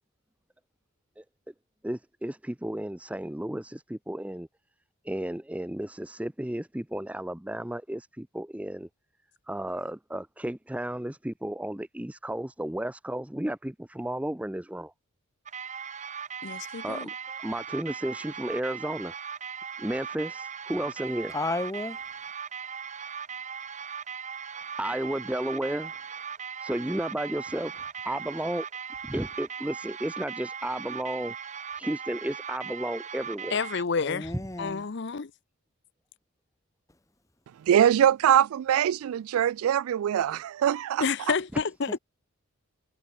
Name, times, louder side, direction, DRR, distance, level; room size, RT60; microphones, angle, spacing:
voice 1, 1.8-4.5 5.0-8.9 9.5-14.9 16.8-19.2 19.8-21.4 24.8-26.0 26.6-28.7 29.0-31.4 31.8-33.6 41.5-41.6, right 1 dB, 5° right, 0.5 m, -33 dB
sound 1, 15.5-33.8, right 7 dB, 35° right, 1.3 m, -39 dB
voice 2, 16.4-17.1 33.5-34.3 34.6-35.3 41.0-42.0, left 5 dB, 55° left, 0.6 m, -29 dB
voice 3, 21.3-22.0 34.0-34.9 41.9-42.0, left 2 dB, 15° left, 1.1 m, -33 dB
voice 4, 37.7-41.0, right 10 dB, 85° right, 0.3 m, -23 dB
head